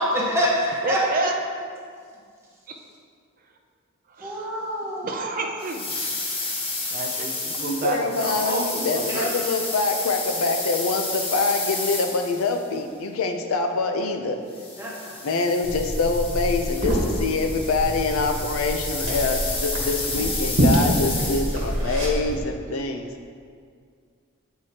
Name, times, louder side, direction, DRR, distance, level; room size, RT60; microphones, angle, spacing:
voice 1, 0.0-1.0 4.2-5.1 9.1-9.3 14.8-15.2, equal, 15° right, -4 dB, 1.0 m, -26 dB
voice 2, 0.8-1.3 4.2-4.5 5.0-6.0 6.9-9.1, right 2 dB, 40° right, 3 dB, 0.5 m, -29 dB
sound 1, 5.6-12.6 14.5-21.8, left 3 dB, 25° left, 1.0 m, -31 dB
voice 3, 7.5-14.4 15.2-23.1, left 3 dB, 90° left, 5 dB, 0.5 m, -25 dB
Liquid, 15.6-22.4, right 1 dB, 70° right, 1.1 m, -26 dB
8.0 x 4.7 x 2.8 m, 2.1 s
head